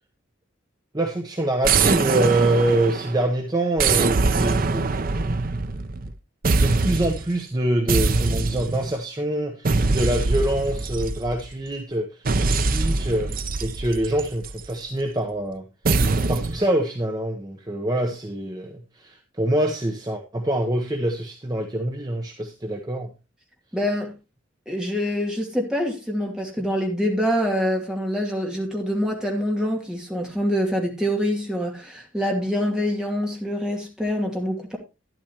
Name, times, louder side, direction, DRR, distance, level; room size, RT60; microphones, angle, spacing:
voice 1, 0.9-4.9 6.5-15.7 16.3-23.1, right 1 dB, 20° right, 1.0 m, -25 dB
sound 1, 1.6-3.2 3.8-6.1 6.4-7.3 7.9-8.9 9.6-11.5 12.3-14.7 15.8-16.6, right 3 dB, 45° right, 0.6 m, -23 dB
voice 2, 23.7-24.1 24.7-34.8, equal, 5° right, 2.4 m, -25 dB
12.0 x 10.5 x 3.0 m
head